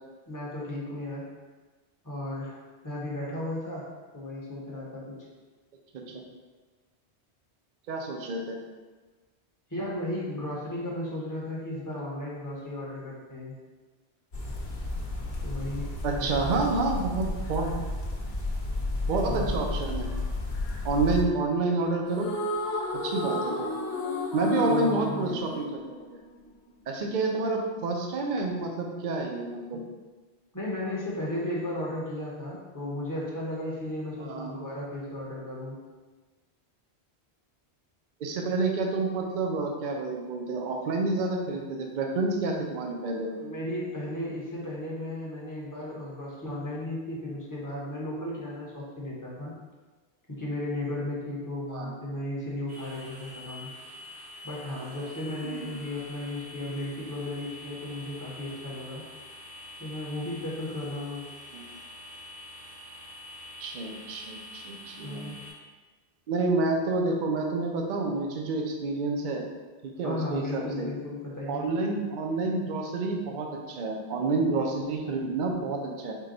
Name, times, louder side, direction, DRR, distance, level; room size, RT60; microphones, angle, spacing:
voice 1, 0.3-1.2 2.0-2.6 2.8-3.8 4.1-5.2 9.7-13.5 15.4-16.4 19.2-19.5 24.7-25.3 30.5-35.7 43.3-49.5 50.4-53.7 54.4-59.0 59.8-61.2 65.0-65.4 70.0-71.7, left 1 dB, 20° left, -5 dB, 0.8 m, -35 dB
voice 2, 7.9-8.6 16.0-17.7 19.1-20.1 20.8-22.3 23.0-23.7 24.3-25.8 26.9-29.8 34.2-34.5 38.2-43.3 51.7-51.9 55.4-55.6 61.5-61.6 63.6-65.3 66.3-69.4 69.8-70.9 71.5-76.1, right 3 dB, 55° right, 1 dB, 0.6 m, -29 dB
sound 1, 14.3-21.2, left 2 dB, 50° left, 0.8 m, -32 dB
sound 2, 22.1-26.5, left 1 dB, 80° left, 1.0 m, -31 dB
sound 3, 52.7-65.5, left 1 dB, 90° right, 1.5 m, -46 dB
4.6 x 2.2 x 3.8 m, 1.3 s
omnidirectional pair, 1.1 m